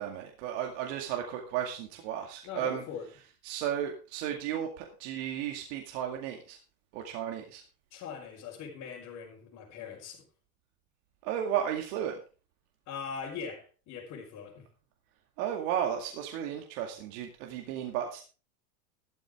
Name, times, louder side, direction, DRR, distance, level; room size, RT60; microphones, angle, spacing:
voice 1, 0.0-2.8 3.4-6.6 6.9-7.6 11.2-12.1 15.4-18.2, right 10 dB, 55° right, 2.2 m, -34 dB
voice 2, 2.4-3.1 7.9-10.3 12.9-14.7, left 6 dB, 35° left, 4.1 m, -41 dB
13.0 x 12.0 x 3.6 m
supercardioid pair, 150°, 45 cm